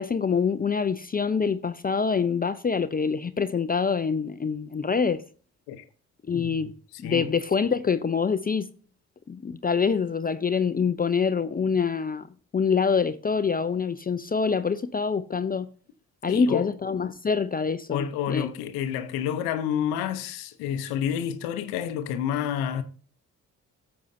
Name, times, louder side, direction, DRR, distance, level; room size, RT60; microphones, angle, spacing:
voice 1, 0.0-5.2 6.3-6.7 7.0-8.7 9.3-15.7 16.2-18.5, left 5 dB, 25° left, 0.5 m, -25 dB
voice 2, 6.3-6.6 7.0-7.3 16.3-16.7 17.9-22.8, left 9 dB, 85° left, 0.8 m, -29 dB
13.0 x 7.1 x 2.6 m
hypercardioid pair, 50°, 37 cm